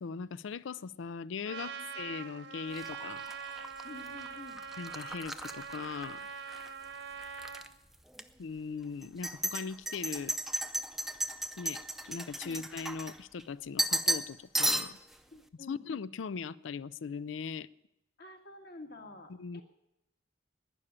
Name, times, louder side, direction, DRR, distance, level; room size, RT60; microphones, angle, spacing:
voice 1, 0.0-3.2 4.8-6.2 8.4-10.3 11.6-11.8 12.1-15.0 15.7-17.7 19.3-19.6, left 5 dB, 90° left, 0.4 m, -39 dB
Trumpet, 1.4-7.7, right 6 dB, 70° right, 1.1 m, -43 dB
sound 1, 2.7-6.7 7.0-7.7 8.1-8.2 9.0-13.4 13.8-14.3 14.5-15.1, right 1 dB, ahead, 0.5 m, -34 dB
voice 2, 3.8-4.6 12.4-12.6 15.3-15.8 18.2-19.6, left 2 dB, 55° left, 1.8 m, -49 dB
11.5 x 10.0 x 9.9 m
head